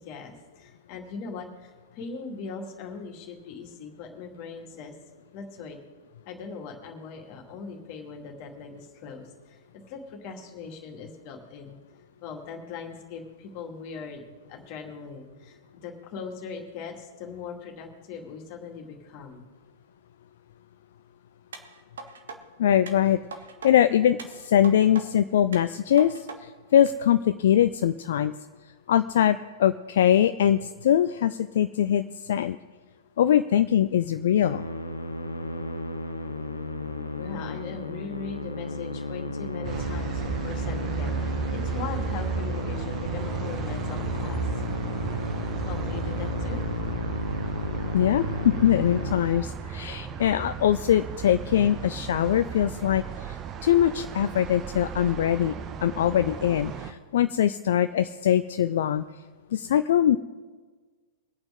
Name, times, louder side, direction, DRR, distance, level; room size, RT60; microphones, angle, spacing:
voice 1, 0.0-4.9 5.3-5.8 6.3-9.6 9.9-11.8 12.2-14.2 14.5-19.4 37.2-44.5 45.6-46.6, left 5 dB, 40° left, 1 dB, 2.3 m, -40 dB
sound 1, 21.5-22.4 22.9-23.7 24.2-25.0 25.5-26.4 26.9-27.0, right 4 dB, 65° right, 1.4 m, -41 dB
voice 2, 22.6-23.2 23.6-28.3 28.9-32.6 33.2-34.6 47.9-55.5 55.8-59.0 59.5-60.2, left 10 dB, 55° left, 10 dB, 0.4 m, -22 dB
Musical instrument, 34.4-49.2, left 2 dB, 80° left, 1.0 m, -33 dB
sound 2, 39.6-56.9, right 7 dB, 30° right, 0.9 m, -34 dB
23.5 x 8.9 x 3.7 m, 1.4 s
figure-of-eight pair, 100°, 0 cm